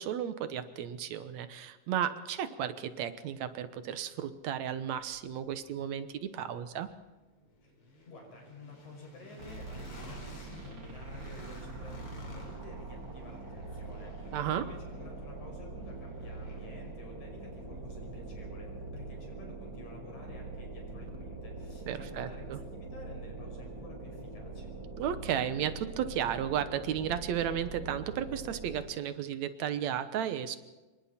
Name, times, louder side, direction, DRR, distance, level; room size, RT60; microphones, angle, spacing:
voice 1, 0.0-6.9 14.3-14.7 21.9-22.6 25.0-30.6, right 9 dB, 75° right, 11 dB, 2.3 m, -34 dB
sound 1, 2.3-2.4 2.9-18.8, left 2 dB, 45° left, 4.2 m, -56 dB
voice 2, 8.1-24.7, left 2 dB, 90° left, 1 dB, 7.1 m, -51 dB
sound 2, 9.4-29.0, right 3 dB, 40° right, 3.5 m, -43 dB
26.5 x 23.0 x 4.3 m, 1.2 s
omnidirectional pair, 3.3 m